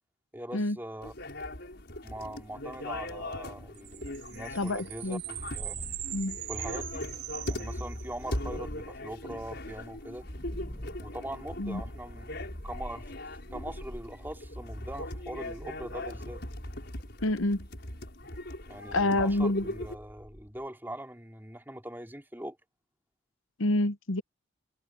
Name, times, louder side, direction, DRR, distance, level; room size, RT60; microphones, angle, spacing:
voice 1, 0.3-1.1 2.0-5.8 6.5-7.1 7.5-10.2 11.0-12.3 12.6-13.1 13.5-16.4 18.7-22.6, right 1 dB, 10° right, 3.9 m, -41 dB
sound 1, 1.0-20.0, left 1 dB, 55° left, 6.5 m, -40 dB
sound 2, 3.7-8.4, right 14 dB, 60° right, 3.8 m, -41 dB
voice 2, 4.5-5.2 6.1-6.4 11.6-11.8 17.2-17.7 18.9-19.6 23.6-24.2, left 1 dB, 85° left, 1.0 m, -27 dB
sound 3, 5.4-20.6, equal, 25° left, 1.6 m, -44 dB
head